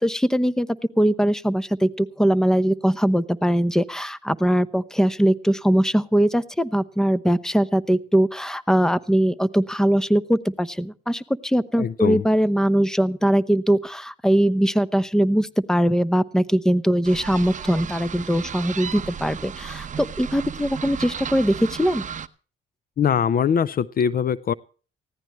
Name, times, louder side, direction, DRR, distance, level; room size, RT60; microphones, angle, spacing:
voice 1, 0.0-22.1, equal, 5° left, 16 dB, 0.9 m, -21 dB
voice 2, 11.8-12.2 23.0-24.5, left 8 dB, 45° left, 19 dB, 0.6 m, -22 dB
sound 1, 17.0-22.3, right 7 dB, 40° right, 0.8 m, -34 dB
20.0 x 16.0 x 3.1 m, 0.38 s
cardioid pair, 90°, 20 cm